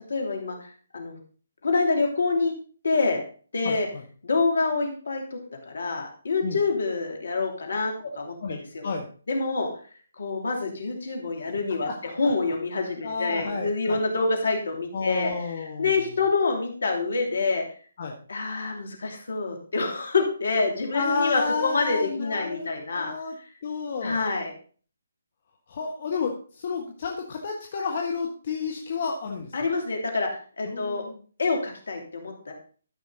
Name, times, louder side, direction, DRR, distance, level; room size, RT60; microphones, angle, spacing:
voice 1, 0.1-1.2 1.6-2.5 2.8-3.2 3.5-3.9 4.2-5.4 5.7-8.2 8.5-8.9 9.3-9.7 10.1-15.3 15.8-17.6 18.3-23.1 24.0-24.5 29.5-30.3 30.6-31.0 31.4-32.5, left 3 dB, 65° left, 2 dB, 2.9 m, -26 dB
voice 2, 3.6-4.0 6.4-6.6 8.0-8.1 8.4-9.0 11.8-12.3 13.0-14.0 14.9-16.0 18.0-18.1 20.9-23.4 23.6-24.2 25.7-29.5 30.6-31.2, left 4 dB, 45° left, 1 dB, 1.3 m, -31 dB
13.0 x 5.7 x 3.9 m, 0.41 s
figure-of-eight pair, 140°, 0 cm